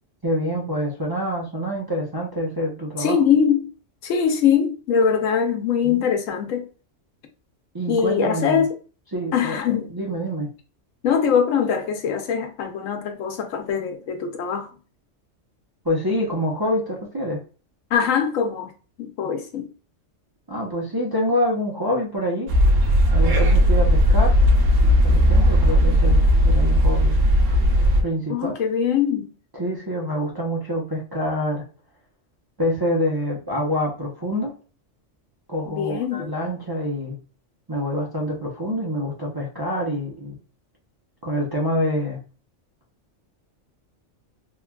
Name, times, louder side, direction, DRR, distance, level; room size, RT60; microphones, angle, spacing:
voice 1, 0.2-3.2 5.8-6.1 7.7-8.6 9.1-9.6 9.9-10.5 15.8-17.4 20.5-22.5 23.1-24.4 25.0-27.1 28.0-28.5 29.5-31.6 32.6-34.5 35.5-37.2 37.7-40.4 41.2-42.2, equal, 25° right, 0.5 m, -26 dB
voice 2, 3.0-3.7 4.0-6.7 7.9-8.8 9.3-9.9 11.0-14.7 17.9-18.7 19.0-19.7 28.3-29.3 35.7-36.3, left 7 dB, 90° left, 1.0 m, -22 dB
sound 1, 22.5-28.0, equal, 80° right, 1.0 m, -16 dB
3.1 x 2.3 x 2.2 m
omnidirectional pair, 1.3 m